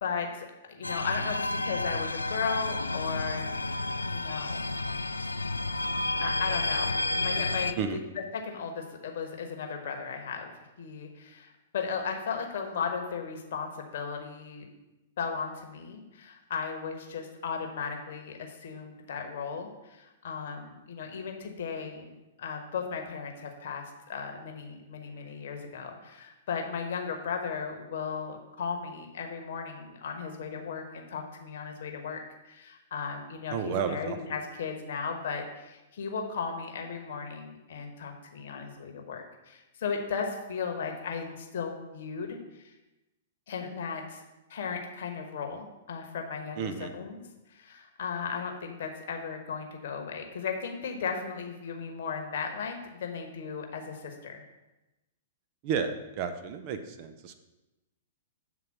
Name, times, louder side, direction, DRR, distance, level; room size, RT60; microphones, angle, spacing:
voice 1, 0.0-4.7 6.2-14.7 15.2-22.1 22.4-42.7 43.5-44.2 44.5-47.2 47.5-54.4, left 6 dB, 55° left, 3 dB, 1.1 m, -36 dB
sound 1, 0.8-7.7, left 2 dB, 85° left, 0.3 m, -31 dB
voice 2, 33.5-34.2 46.6-46.9 55.6-57.4, right 7 dB, 40° right, 8 dB, 0.6 m, -32 dB
7.5 x 3.8 x 5.9 m, 1.0 s
figure-of-eight pair, 105°, 0 cm